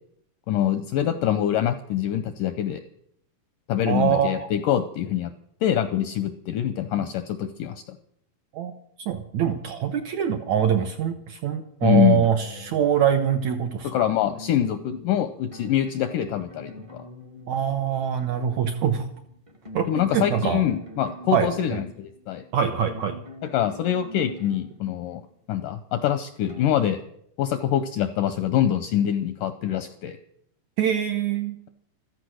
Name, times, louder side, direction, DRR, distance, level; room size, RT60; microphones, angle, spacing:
voice 1, 0.5-2.8 3.7-5.3 5.6-7.8 11.8-12.2 13.8-17.1 19.9-22.4 23.5-25.2 25.5-27.0 27.4-30.2, left 10 dB, 80° left, 11 dB, 1.9 m, -24 dB
voice 2, 3.9-4.5 8.5-8.7 9.1-13.9 17.5-19.1 19.7-19.9 20.1-20.6 21.3-21.5 22.5-23.2 30.8-31.5, right 8 dB, 80° right, 7 dB, 1.7 m, -23 dB
sound 1, 12.2-13.5 14.2-25.3 26.1-26.7, left 1 dB, 40° right, 0.4 m, -45 dB
14.5 x 13.5 x 6.4 m, 0.71 s
omnidirectional pair, 4.5 m